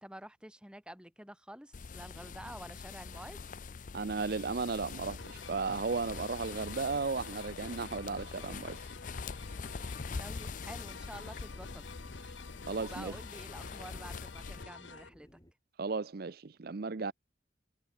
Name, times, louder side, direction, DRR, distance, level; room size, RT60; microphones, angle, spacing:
voice 1, 0.0-3.4 10.2-11.8 12.8-15.4, right 1 dB, 5° right, 3.9 m, -49 dB
sound 1, 1.7-14.6, left 4 dB, 45° left, 0.5 m, -44 dB
voice 2, 3.9-8.9 12.7-13.1 15.8-17.1, right 4 dB, 55° right, 0.6 m, -35 dB
sound 2, 5.2-15.1, left 4 dB, 85° left, 1.8 m, -50 dB
sound 3, 9.0-15.5, equal, 20° left, 6.0 m, -60 dB
head